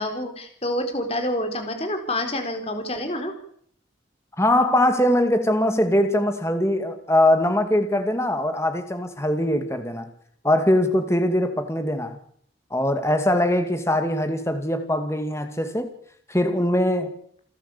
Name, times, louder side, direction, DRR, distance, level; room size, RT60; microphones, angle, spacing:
voice 1, 0.0-3.3, left 1 dB, 30° left, 5 dB, 4.1 m, -27 dB
voice 2, 4.4-10.1 10.4-12.2 12.7-15.9 16.3-17.1, left 1 dB, 15° left, 7 dB, 2.4 m, -22 dB
28.5 x 11.5 x 8.5 m, 0.64 s
head